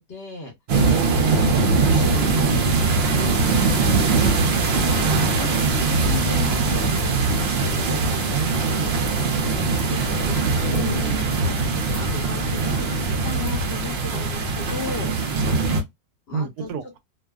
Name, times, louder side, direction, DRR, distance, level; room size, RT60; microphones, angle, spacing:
voice 1, 0.1-0.5 1.3-2.7 3.1-5.0 5.4-8.0 9.4-10.4 10.7-11.5 11.9-12.9 13.2-15.1 16.3-16.7, left 4 dB, 50° left, 0.9 m, -35 dB
sound 1, 0.7-15.8, right 3 dB, 55° right, 0.7 m, -21 dB
voice 2, 0.9-1.5 3.2-3.3 8.3-8.9 16.3-17.0, right 6 dB, 85° right, 1.1 m, -31 dB
2.7 x 2.3 x 2.2 m
omnidirectional pair, 1.6 m